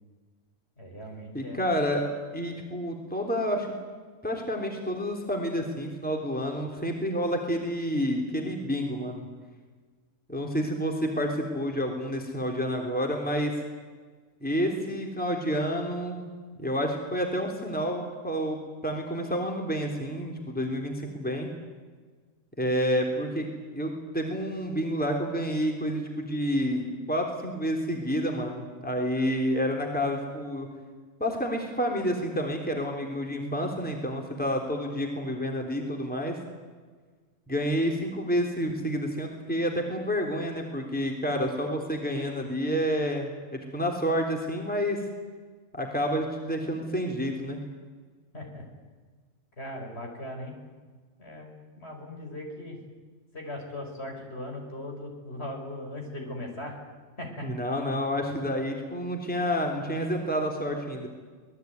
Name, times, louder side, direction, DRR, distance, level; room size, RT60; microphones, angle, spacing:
voice 1, 0.8-1.7 48.3-48.7 49.6-50.5 51.2-51.5 51.8-52.8 53.3-56.8 57.2-57.5, left 1 dB, 50° left, 2 dB, 5.6 m, -38 dB
voice 2, 1.3-2.1 2.3-3.7 4.2-9.3 10.3-13.6 14.4-16.2 16.6-21.5 22.6-30.7 31.2-36.4 37.5-45.0 45.7-47.6 57.4-61.1, equal, 5° left, 1 dB, 3.4 m, -29 dB
26.5 x 19.5 x 9.5 m, 1.5 s
omnidirectional pair, 1.4 m